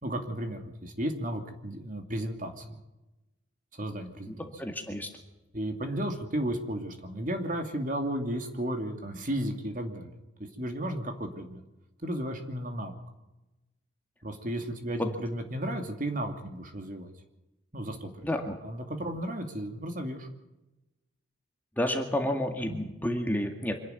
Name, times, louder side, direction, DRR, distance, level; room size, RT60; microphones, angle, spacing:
voice 1, 0.0-2.8 3.7-4.4 5.5-10.1 10.6-11.6 12.0-13.0 14.2-17.1 17.7-18.3 18.6-20.3 22.7-22.8, right 1 dB, 45° right, 5 dB, 2.7 m, -34 dB
voice 2, 4.3-5.1 15.0-15.1 18.2-18.6 21.8-23.8, left 1 dB, 10° left, 4 dB, 1.9 m, -30 dB
26.0 x 11.0 x 9.3 m, 1.0 s
head